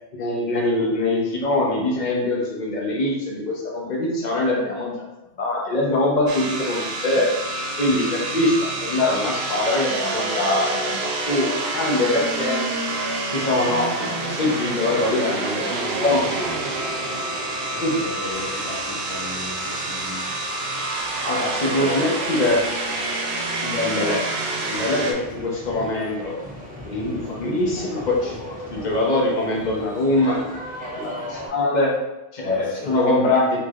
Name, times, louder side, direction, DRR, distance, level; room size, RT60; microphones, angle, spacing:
voice 1, 0.2-5.1 5.4-7.3 7.8-11.5 11.7-12.6 13.3-15.7 16.0-16.2 17.8-18.0 21.2-22.6 23.6-24.2 24.6-26.4 26.9-30.5 31.0-31.9 32.3-33.4, left 2 dB, 45° left, -2 dB, 0.9 m, -23 dB
sound 1, 6.3-25.1, right 2 dB, 75° right, 0.8 m, -27 dB
voice 2, 17.0-20.3 21.7-22.1 32.4-33.3, left 1 dB, 25° right, -10 dB, 1.3 m, -35 dB
sound 2, 18.3-24.9, equal, 25° left, 1.5 m, -36 dB
sound 3, 24.7-31.5, equal, 10° right, 0.8 m, -37 dB
4.5 x 2.8 x 2.4 m, 0.98 s
omnidirectional pair, 1.1 m